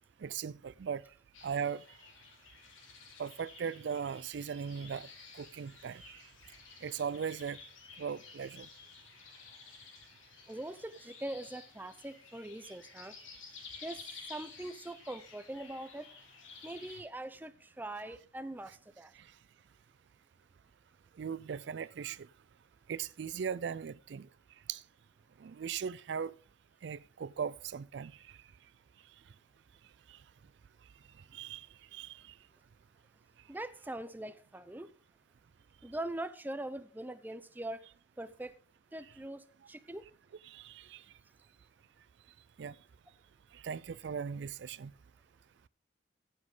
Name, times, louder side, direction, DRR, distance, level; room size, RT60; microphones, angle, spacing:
voice 1, 0.2-1.0 1.4-1.8 3.2-5.1 5.3-6.2 6.8-7.6 8.0-8.7 12.7-12.8 19.2-19.3 21.2-22.3 22.9-24.3 24.7-24.8 25.4-26.3 26.8-28.4 30.1-30.2 31.3-32.3 40.4-41.0 42.6-42.8 43.5-44.9, right 7 dB, 65° right, 0.4 m, -39 dB
sound 1, 1.3-17.0, left 4 dB, 85° left, 3.4 m, -53 dB
voice 2, 10.5-13.2 13.5-14.0 14.3-16.1 16.6-19.1 33.5-34.9 35.8-37.8 38.2-38.6 38.9-40.1, right 1 dB, 10° right, 0.5 m, -42 dB
14.5 x 7.5 x 3.8 m
head